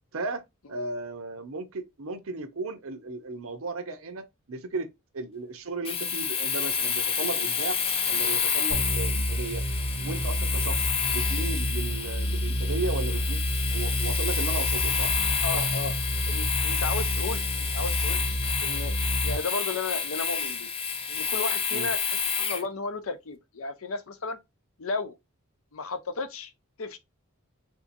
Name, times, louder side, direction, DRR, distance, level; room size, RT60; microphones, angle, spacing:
voice 1, 0.1-0.4 0.7-7.8 8.1-9.7 10.0-13.4 13.7-15.1 21.7-21.9, right 3 dB, 75° right, 0.8 m, -35 dB
Domestic sounds home sounds, 5.8-22.7, left 6 dB, 25° left, 0.5 m, -29 dB
sound 1, 8.7-19.4, equal, 20° right, 0.7 m, -29 dB
voice 2, 15.4-15.9 16.3-18.2 18.6-19.0 19.2-20.7 21.1-24.4 24.8-25.2 25.7-26.5 26.8-27.0, left 4 dB, 75° left, 0.7 m, -34 dB
3.6 x 2.7 x 2.6 m
head